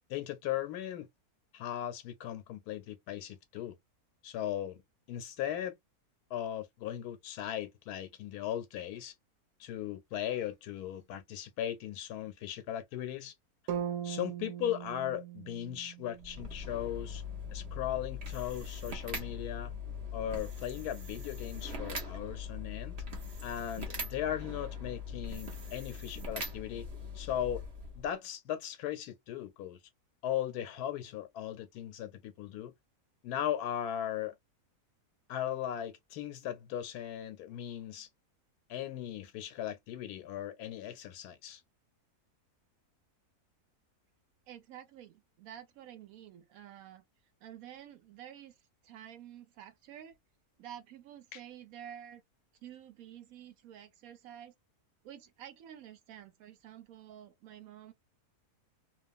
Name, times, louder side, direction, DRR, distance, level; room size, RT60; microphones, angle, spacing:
voice 1, 0.1-1.1 1.5-3.8 4.2-4.8 5.1-5.8 6.3-9.1 9.6-13.3 14.0-17.2 17.5-19.7 20.1-23.0 23.4-26.9 27.1-27.6 28.0-29.8 30.2-32.7 33.2-34.3 35.3-38.1 38.7-41.6 51.3-51.4, left 11 dB, 85° left, 1.1 m, -38 dB
sound 1, 13.7-17.8, right 9 dB, 90° right, 1.2 m, -41 dB
sound 2, 16.2-28.1, left 3 dB, 50° right, 1.1 m, -41 dB
voice 2, 44.5-47.0 47.4-50.2 50.6-52.2 52.6-54.5 55.0-57.9, right 10 dB, 70° right, 1.0 m, -50 dB
2.9 x 2.2 x 2.5 m
omnidirectional pair, 1.6 m